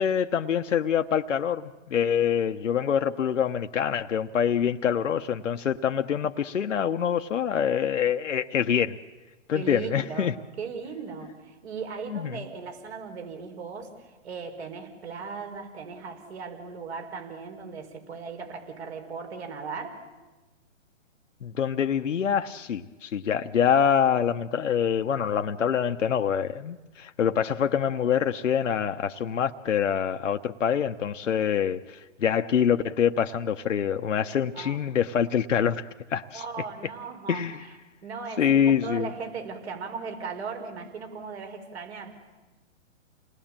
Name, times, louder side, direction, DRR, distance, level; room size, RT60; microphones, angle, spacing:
voice 1, 0.0-9.0 9.5-10.3 12.1-12.4 21.4-36.4 37.3-37.6 38.4-39.1, left 8 dB, 75° left, 6 dB, 1.1 m, -25 dB
voice 2, 9.5-20.0 34.5-34.8 36.3-37.8 38.0-42.1, right 5 dB, 60° right, 5 dB, 5.7 m, -38 dB
29.0 x 20.0 x 8.9 m, 1.2 s
hypercardioid pair, 140°, 37 cm